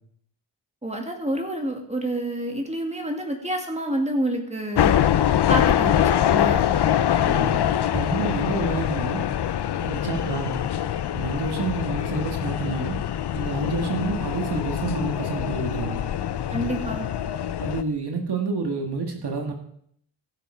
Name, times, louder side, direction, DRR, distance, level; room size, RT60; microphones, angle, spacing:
voice 1, 0.8-4.9 5.5-6.7 16.5-17.1, right 1 dB, 15° right, 3 dB, 2.3 m, -28 dB
sound 1, 4.8-17.8, left 10 dB, 60° left, 0.6 m, -24 dB
voice 2, 7.2-9.2 9.8-10.6 11.1-13.0 13.3-16.0 17.6-19.5, right 4 dB, 55° right, 3 dB, 2.0 m, -29 dB
15.5 x 6.8 x 5.0 m, 0.68 s
cardioid pair, 70°, 46 cm